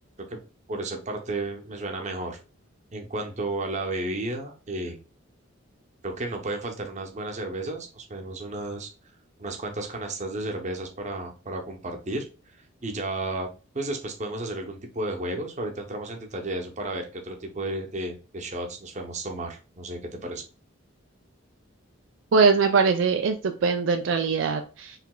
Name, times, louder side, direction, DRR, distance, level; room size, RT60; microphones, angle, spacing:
voice 1, 0.7-2.4 2.9-5.0 6.0-8.9 9.4-12.2 12.8-13.5 13.7-20.4, right 2 dB, 35° right, 3 dB, 0.8 m, -33 dB
voice 2, 22.3-24.9, right 5 dB, 65° right, 5 dB, 0.4 m, -22 dB
4.8 x 3.2 x 2.3 m, 0.33 s
head